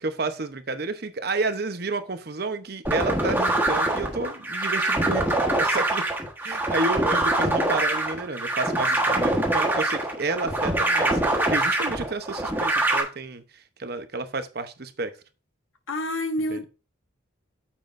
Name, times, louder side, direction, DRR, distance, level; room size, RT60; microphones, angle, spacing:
voice 1, 0.0-6.1 6.4-11.2 11.5-15.1 16.5-16.6, right 3 dB, 50° right, 0.9 m, -30 dB
sound 1, 2.9-13.0, right 1 dB, 10° right, 1.3 m, -24 dB
voice 2, 15.9-16.7, left 1 dB, 85° left, 1.1 m, -28 dB
9.2 x 7.3 x 2.6 m
head